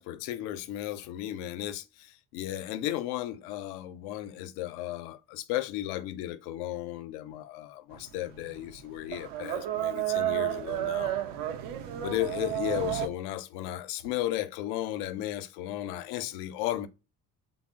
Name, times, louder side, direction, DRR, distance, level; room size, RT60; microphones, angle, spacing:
voice 1, 0.0-11.1 12.0-16.9, left 14 dB, 65° left, 0.6 m, -34 dB
sound 1, 7.9-13.1, right 12 dB, 65° right, 0.6 m, -32 dB
3.5 x 2.0 x 3.5 m
hypercardioid pair, 55°, 49 cm